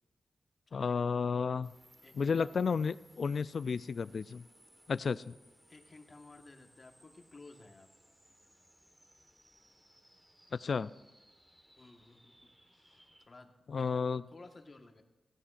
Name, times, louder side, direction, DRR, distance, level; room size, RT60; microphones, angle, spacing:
voice 1, 0.7-1.7 2.2-4.4 4.9-5.3 10.5-10.9 13.7-14.2, left 5 dB, 60° left, 17 dB, 0.3 m, -32 dB
sound 1, 1.6-13.3, equal, 10° right, 1.5 m, -64 dB
voice 2, 2.0-2.5 5.7-7.9 11.8-14.0 14.3-15.0, left 3 dB, 40° left, 4 dB, 1.4 m, -56 dB
16.5 x 16.0 x 2.5 m, 1.1 s
wide cardioid pair, 90°, 0 cm